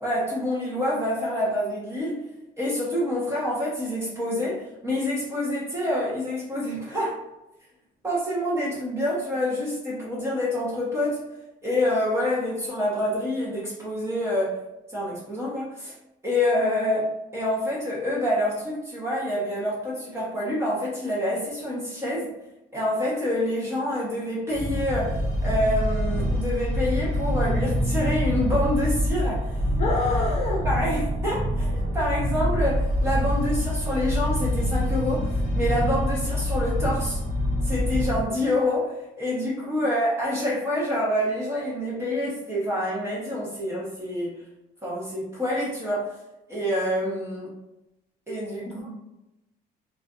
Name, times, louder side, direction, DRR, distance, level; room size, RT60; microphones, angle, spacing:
voice 1, 0.0-2.3 2.6-7.2 8.0-11.2 11.6-14.6 14.9-15.9 16.2-22.3 22.7-29.6 30.5-37.2 37.6-44.3 44.8-46.1 46.5-47.5 48.3-48.9, left 1 dB, 15° right, -6 dB, 0.8 m, -27 dB
sound 1, 24.5-38.2, equal, 60° right, 0.8 m, -25 dB
voice 2, 29.8-30.6 48.7-48.9, left 3 dB, 40° left, -2 dB, 0.6 m, -27 dB
2.5 x 2.3 x 2.3 m, 0.93 s
cardioid pair, 110°, 17 cm